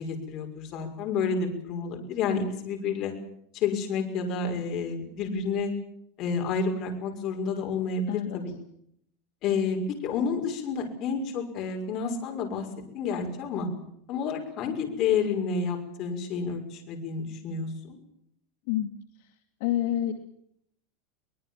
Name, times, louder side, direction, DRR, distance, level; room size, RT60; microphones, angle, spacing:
voice 1, 0.0-3.1 3.5-5.7 6.2-8.5 9.4-12.7 12.9-13.7 14.1-18.0, left 5 dB, 35° left, 3 dB, 5.9 m, -30 dB
voice 2, 8.1-8.4 18.7-18.9 19.2-19.3 19.6-20.1, left 12 dB, 60° left, 4 dB, 2.4 m, -28 dB
23.5 x 20.5 x 7.4 m, 0.71 s
supercardioid pair, 165°, 0 cm